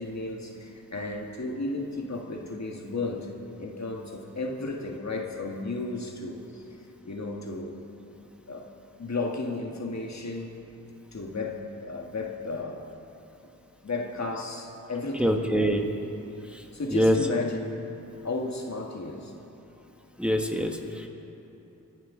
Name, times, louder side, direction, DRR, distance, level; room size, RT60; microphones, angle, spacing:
voice 1, 0.0-6.6 7.0-7.8 8.5-8.7 9.0-10.6 11.1-12.9 13.8-15.4 16.7-17.6 18.2-19.3, left 3 dB, 50° left, 1 dB, 1.7 m, -34 dB
voice 2, 15.2-15.8 16.5-17.2 20.2-21.1, equal, 5° right, 2 dB, 1.5 m, -25 dB
25.0 x 11.5 x 3.8 m, 2.9 s
cardioid pair, 45°, 34 cm